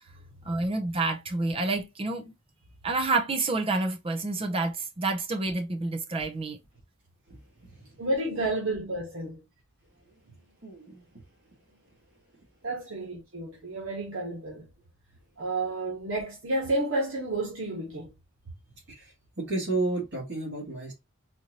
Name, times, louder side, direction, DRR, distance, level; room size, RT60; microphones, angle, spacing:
voice 1, 0.4-2.3 2.8-6.6, right 3 dB, 25° right, 0.6 m, -28 dB
voice 2, 7.3-7.9 10.3-10.4 10.6-11.1 18.9-20.9, right 3 dB, 55° right, 1.8 m, -33 dB
voice 3, 8.0-9.4 12.6-14.7 15.4-18.1, right 2 dB, 90° right, 1.4 m, -31 dB
4.3 x 2.6 x 2.9 m
head